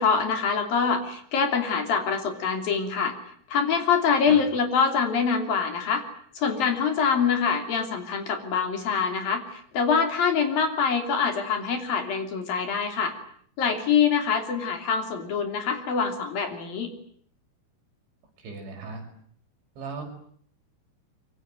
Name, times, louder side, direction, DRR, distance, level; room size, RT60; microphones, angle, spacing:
voice 1, 0.0-3.2 3.5-6.0 6.4-13.2 13.6-16.9, left 6 dB, 55° left, 6 dB, 4.5 m, -25 dB
voice 2, 18.4-19.0 19.8-20.0, right 4 dB, 75° right, 3 dB, 8.2 m, -37 dB
25.5 x 24.0 x 9.2 m, 0.62 s
omnidirectional pair, 5.4 m